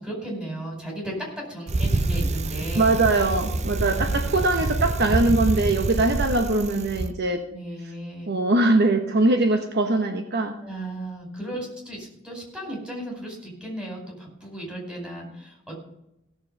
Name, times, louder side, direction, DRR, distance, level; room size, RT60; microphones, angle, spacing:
voice 1, 0.0-2.9 3.7-4.1 7.5-8.3 10.6-15.8, right 1 dB, 5° right, -1 dB, 5.0 m, -35 dB
Bicycle, 1.7-7.1, right 2 dB, 35° right, 0.6 m, -26 dB
voice 2, 2.8-7.4 8.3-10.6, right 2 dB, 55° right, 5 dB, 1.1 m, -22 dB
17.0 x 7.2 x 5.4 m, 0.83 s
head